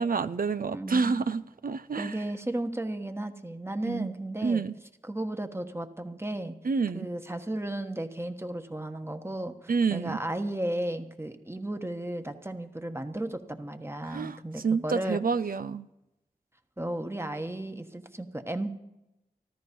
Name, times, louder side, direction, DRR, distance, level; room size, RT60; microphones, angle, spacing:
voice 1, 0.0-2.2 3.8-4.1 4.4-4.7 6.6-7.1 9.7-10.2 14.0-15.9, right 5 dB, 70° right, 0.5 m, -28 dB
voice 2, 0.7-1.3 2.0-4.7 5.1-6.5 6.9-15.2 16.8-18.7, right 1 dB, 15° right, 1.3 m, -34 dB
14.0 x 13.5 x 5.4 m
cardioid pair, 40°, 15 cm